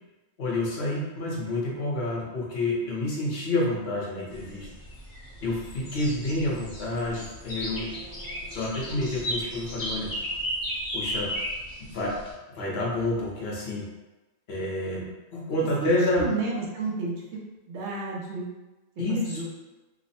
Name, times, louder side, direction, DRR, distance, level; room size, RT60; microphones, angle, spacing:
voice 1, 0.4-4.7 5.4-7.9 8.5-10.1 10.9-11.3 11.8-12.1 12.5-13.8 14.5-16.3 19.0-19.4, left 1 dB, 60° left, -4 dB, 1.1 m, -28 dB
sound 1, 4.3-12.3, equal, 35° left, 1.0 m, -35 dB
voice 2, 16.2-17.2 17.7-18.5 19.1-19.5, right 3 dB, 70° right, -4 dB, 1.0 m, -31 dB
3.1 x 2.1 x 4.1 m, 1.1 s
omnidirectional pair, 1.2 m